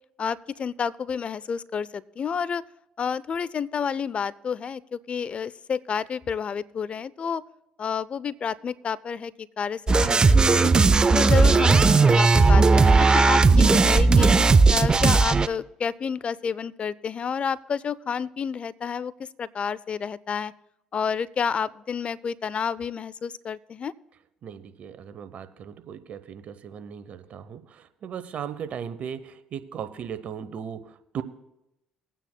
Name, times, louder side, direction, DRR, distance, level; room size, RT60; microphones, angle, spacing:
voice 1, 0.2-2.6 3.0-7.4 7.8-10.7 11.1-14.3 14.7-20.5 20.9-23.9, left 6 dB, 45° left, 20 dB, 0.4 m, -30 dB
sound 1, 9.9-15.5, right 4 dB, 30° right, 0.5 m, -17 dB
voice 2, 24.4-31.2, right 8 dB, 55° right, 13 dB, 0.8 m, -37 dB
21.0 x 9.1 x 2.2 m, 0.88 s
hypercardioid pair, 65°, 3 cm